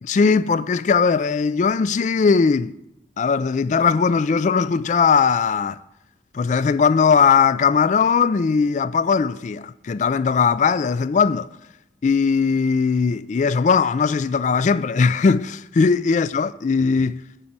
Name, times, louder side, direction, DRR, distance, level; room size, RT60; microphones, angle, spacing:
voice 1, 0.0-2.7 3.2-5.8 6.3-11.5 12.0-17.2, left 5 dB, 40° left, 0.3 m, -19 dB
14.5 x 5.3 x 8.4 m
head